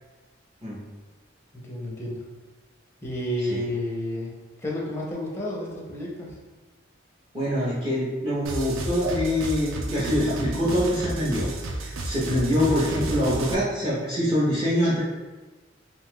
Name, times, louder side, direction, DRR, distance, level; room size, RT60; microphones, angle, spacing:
voice 1, 1.5-2.2 3.0-6.4, left 1 dB, 15° left, -3 dB, 0.6 m, -31 dB
voice 2, 7.3-11.5 11.8-15.0, equal, 25° right, -10 dB, 0.7 m, -24 dB
sound 1, 8.4-13.5, right 2 dB, 85° right, 0.4 m, -32 dB
2.6 x 2.3 x 3.5 m, 1.2 s
head